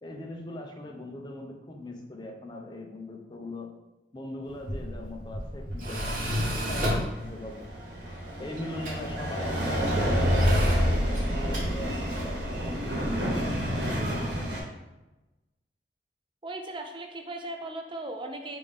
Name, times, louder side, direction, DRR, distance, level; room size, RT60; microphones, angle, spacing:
voice 1, 0.0-3.7 4.1-7.7 8.4-14.5, left 1 dB, 25° left, 2 dB, 0.5 m, -40 dB
Tools, 4.5-12.4, equal, 45° right, 0.9 m, -34 dB
sound 1, 7.1-14.6, equal, 65° right, 1.1 m, -28 dB
voice 2, 16.4-18.6, right 2 dB, 25° right, 4 dB, 0.4 m, -37 dB
5.2 x 2.6 x 3.4 m, 1.0 s
head